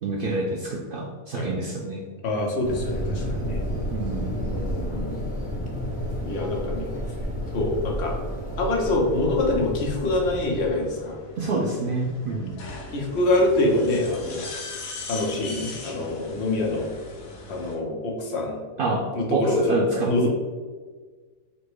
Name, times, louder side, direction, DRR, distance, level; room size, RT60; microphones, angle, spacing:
voice 1, 0.0-2.0 3.9-4.4 11.4-12.6 18.8-19.0 19.3-20.3, right 2 dB, 85° right, -1 dB, 0.4 m, -27 dB
voice 2, 2.2-3.6 4.5-5.2 6.2-7.2 7.5-8.2 8.6-11.2 12.9-14.4 15.1-16.9 17.5-18.6 19.1-19.7 20.0-20.3, left 2 dB, 55° left, -1 dB, 1.1 m, -25 dB
sound 1, 2.6-10.7, equal, 5° left, 0.9 m, -30 dB
sound 2, 10.1-17.7, left 2 dB, 75° left, 1.3 m, -39 dB
4.2 x 2.2 x 4.5 m, 1.4 s
omnidirectional pair, 1.5 m